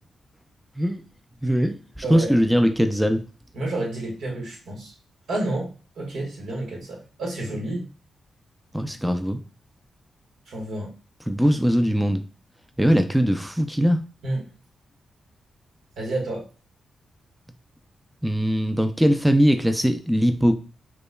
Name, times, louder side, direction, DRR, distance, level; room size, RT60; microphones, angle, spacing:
voice 1, 1.4-3.2 8.7-9.4 11.3-12.2 12.8-14.0 18.2-20.5, equal, 5° right, 7 dB, 0.4 m, -21 dB
voice 2, 3.5-4.9 5.3-7.9 10.5-10.9 14.2-14.4 16.0-16.5, right 2 dB, 75° right, -1 dB, 1.4 m, -30 dB
4.9 x 2.2 x 2.2 m, 0.35 s
cardioid pair, 65°, 0 cm